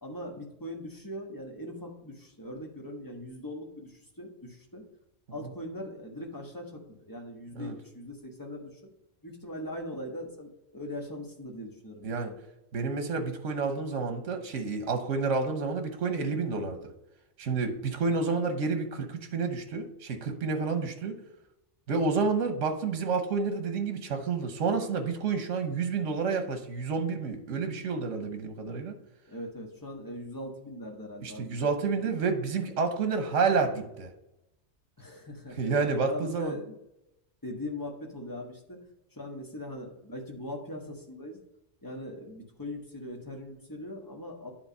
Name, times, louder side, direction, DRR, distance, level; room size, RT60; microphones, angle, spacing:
voice 1, 0.0-4.8 5.3-8.9 9.2-12.4 29.3-32.1 35.0-36.8 37.4-41.4 41.8-44.5, left 1 dB, 15° left, 0 dB, 1.3 m, -41 dB
voice 2, 12.7-16.9 17.4-21.1 21.9-28.9 31.2-34.1 35.6-36.5, right 4 dB, 80° right, 6 dB, 1.3 m, -29 dB
9.9 x 3.7 x 5.5 m, 0.87 s
omnidirectional pair, 1.3 m